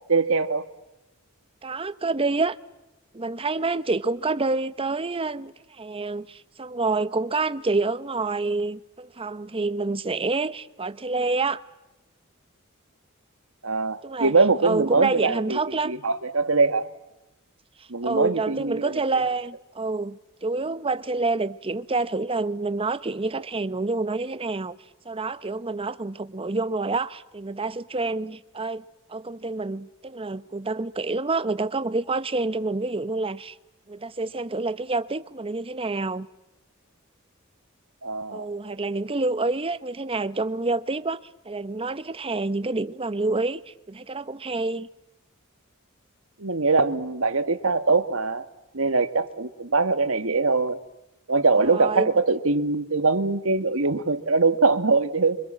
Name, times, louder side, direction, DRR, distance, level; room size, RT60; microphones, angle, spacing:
voice 1, 0.1-0.6 13.6-16.9 17.9-19.2 38.0-38.5 46.4-48.4 48.7-50.8 51.3-55.4, right 3 dB, 70° right, 1.6 m, -22 dB
voice 2, 1.6-2.6 3.1-11.6 14.0-14.3 14.6-15.9 17.8-24.8 25.0-28.8 29.1-33.5 33.9-36.3 38.3-41.2 41.4-44.9 51.6-52.1, right 3 dB, 25° right, 0.9 m, -28 dB
28.5 x 24.5 x 7.5 m
head